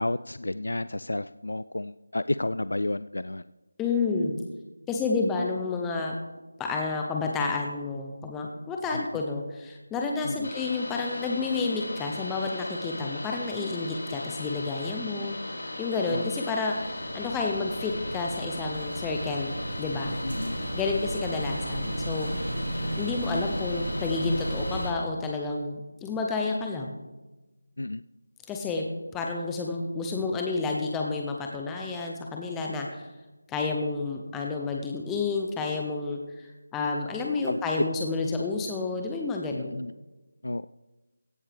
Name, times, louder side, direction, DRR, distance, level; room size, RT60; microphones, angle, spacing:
voice 1, 0.0-3.4 8.9-9.0 10.2-10.5 16.1-16.2 20.2-20.6 27.8-28.0 37.5-37.6 39.5-39.9 40.4-40.7, left 2 dB, 90° left, 15 dB, 0.4 m, -31 dB
voice 2, 3.8-4.4 4.9-6.1 6.6-15.4 15.8-20.1 20.7-22.3 23.0-26.9 28.5-28.8 29.1-33.0 33.5-39.8, left 3 dB, 5° left, 1 dB, 0.5 m, -30 dB
sound 1, 10.4-24.9, left 1 dB, 65° left, 3.9 m, -38 dB
sound 2, 16.6-24.9, right 1 dB, 85° right, 3.6 m, -34 dB
16.5 x 12.0 x 3.4 m, 1.1 s
figure-of-eight pair, 180°, 0 cm